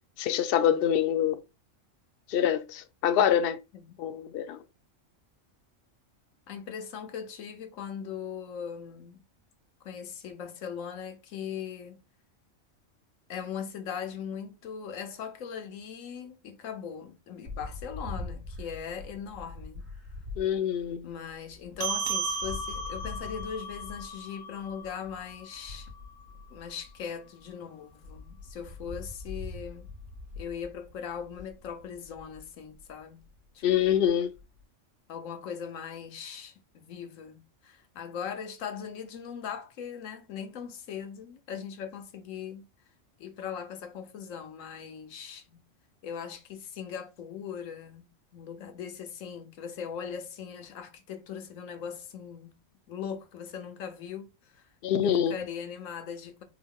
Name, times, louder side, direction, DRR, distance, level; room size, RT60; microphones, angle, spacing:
voice 1, 0.2-1.4 2.3-3.6 4.0-4.6 20.4-21.1 33.6-34.3 54.8-55.3, left 9 dB, 60° left, 0.6 m, -25 dB
voice 2, 6.5-9.2 9.8-12.0 13.3-19.9 21.0-25.9 26.5-29.9 30.4-33.2 33.5-34.1 35.1-42.7 43.2-45.6 46.0-52.5 52.9-54.7 55.0-56.4, left 7 dB, 90° left, 1.2 m, -40 dB
sound 1, 17.4-27.5 27.8-34.6, left 3 dB, 90° right, 2.6 m, -44 dB
sound 2, 21.8-26.6, right 3 dB, 50° right, 1.1 m, -36 dB
4.7 x 2.2 x 3.5 m
omnidirectional pair, 1.3 m